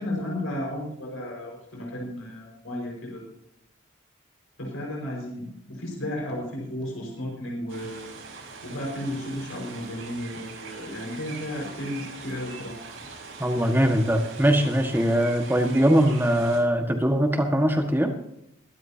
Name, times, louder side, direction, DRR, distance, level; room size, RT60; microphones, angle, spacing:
voice 1, 0.0-3.2 4.6-8.1 8.6-12.8, left 1 dB, 85° left, -1 dB, 5.2 m, -33 dB
sound 1, 7.7-16.6, right 4 dB, 85° right, 5.7 m, -42 dB
voice 2, 13.4-18.1, equal, 10° right, 4 dB, 1.6 m, -21 dB
23.0 x 12.5 x 2.8 m, 0.78 s
head